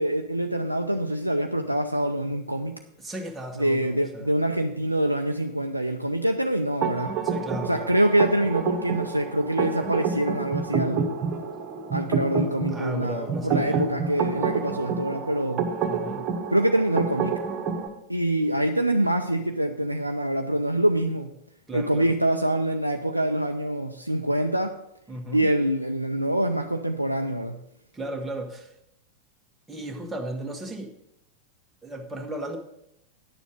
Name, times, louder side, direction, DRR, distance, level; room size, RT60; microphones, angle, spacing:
voice 1, 0.0-2.8 3.6-7.1 7.7-11.2 11.9-15.7 16.5-17.4 18.1-21.3 21.7-24.8 25.3-27.6, right 1 dB, 90° right, 4 dB, 0.5 m, -25 dB
voice 2, 3.0-4.3 7.2-7.9 12.7-13.9 15.9-16.3 21.7-22.1 25.1-25.5 27.9-28.7 29.7-30.9 31.8-32.6, right 1 dB, 10° right, 1 dB, 1.4 m, -35 dB
sound 1, 6.8-17.9, right 5 dB, 35° right, 1.4 m, -29 dB
10.0 x 7.0 x 5.0 m, 0.80 s
figure-of-eight pair, 90°, 0 cm